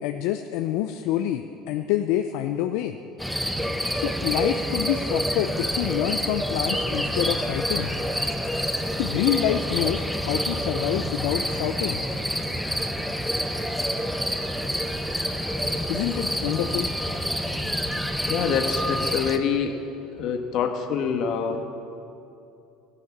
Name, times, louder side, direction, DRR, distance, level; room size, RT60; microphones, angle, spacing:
voice 1, 0.0-2.9 3.9-7.9 9.0-12.0 15.9-16.9, left 12 dB, 75° left, 7 dB, 0.6 m, -27 dB
sound 1, 3.2-19.4, equal, ahead, 0.9 m, -27 dB
voice 2, 18.3-19.8 20.2-21.7, left 6 dB, 60° left, 6 dB, 1.5 m, -25 dB
14.5 x 11.0 x 7.2 m, 2.8 s
supercardioid pair, 100°, 0 cm